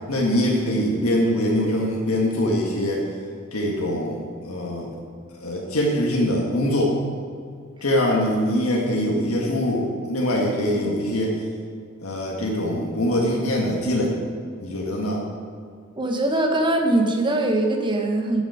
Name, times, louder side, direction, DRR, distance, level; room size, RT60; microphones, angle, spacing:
voice 1, 0.1-3.0 3.5-4.9 5.4-7.0 7.8-11.4 12.0-14.1 14.6-15.2, left 1 dB, 80° left, -2 dB, 1.6 m, -23 dB
voice 2, 16.0-18.4, right 2 dB, 20° right, 3 dB, 1.1 m, -21 dB
12.0 x 7.1 x 4.9 m, 2.1 s
head